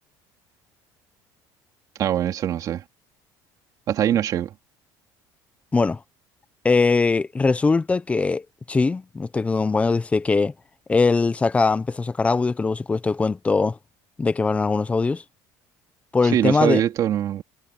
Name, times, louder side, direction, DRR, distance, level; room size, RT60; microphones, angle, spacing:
voice 1, 2.0-2.8 3.9-4.5 16.3-17.4, right 11 dB, 45° right, 3.1 m, -22 dB
voice 2, 6.6-10.5 10.9-13.8 14.2-15.2 16.1-16.8, left 4 dB, 15° left, 1.0 m, -21 dB
cardioid pair, 140°, 8 cm